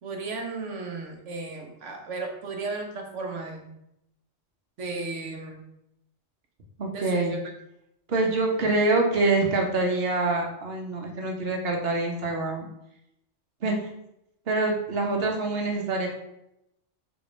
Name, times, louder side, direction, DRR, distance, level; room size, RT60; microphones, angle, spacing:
voice 1, 0.0-3.7 4.8-5.6 6.9-7.4, right 3 dB, 75° right, 3 dB, 1.4 m, -35 dB
voice 2, 6.8-7.3 8.1-12.7 13.6-13.9 14.5-16.1, right 2 dB, 55° right, 1 dB, 1.4 m, -25 dB
5.2 x 4.2 x 5.2 m, 0.81 s
omnidirectional pair, 1.3 m